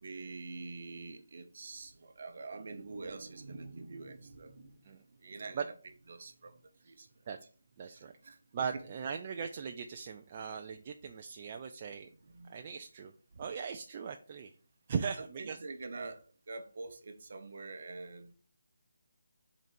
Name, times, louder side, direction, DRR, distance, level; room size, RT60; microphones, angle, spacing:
voice 1, 0.0-5.7 6.1-6.6 6.8-7.1 7.9-8.4 12.2-12.5 13.3-13.4 15.0-15.1 15.4-18.3, right 3 dB, 45° right, 0.8 m, -46 dB
voice 2, 7.8-8.1 8.5-12.1 12.5-13.1 13.4-14.5 14.9-15.6, right 6 dB, 25° right, 0.3 m, -39 dB
5.1 x 3.9 x 5.1 m
figure-of-eight pair, 175°, 0 cm